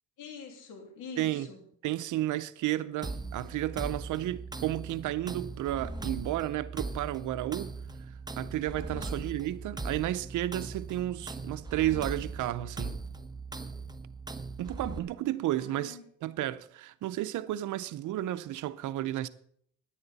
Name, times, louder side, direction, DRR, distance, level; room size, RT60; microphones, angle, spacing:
voice 1, 0.2-1.6 8.9-9.2 15.6-16.0, left 5 dB, 85° left, 2.7 m, -45 dB
voice 2, 1.2-1.5 1.8-7.7 8.4-13.0 14.6-19.3, right 14 dB, 80° right, 0.7 m, -32 dB
sound 1, 3.0-15.0, right 3 dB, 15° right, 1.0 m, -39 dB
16.0 x 10.5 x 4.1 m
cardioid pair, 90°, 30 cm